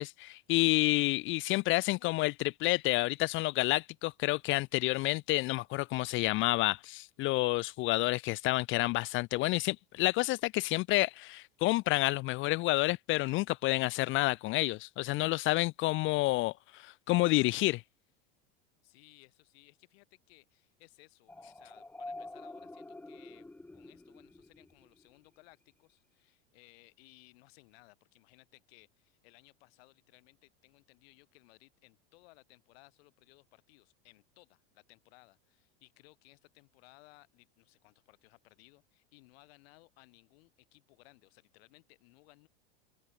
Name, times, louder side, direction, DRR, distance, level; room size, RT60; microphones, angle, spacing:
voice 1, 0.0-17.8, left 20 dB, 40° left, 0.4 m, -29 dB
voice 2, 18.8-42.5, left 25 dB, 70° left, 5.1 m, -62 dB
sound 1, 21.3-25.0, left 2 dB, 5° left, 0.9 m, -47 dB
supercardioid pair, 115°, 32 cm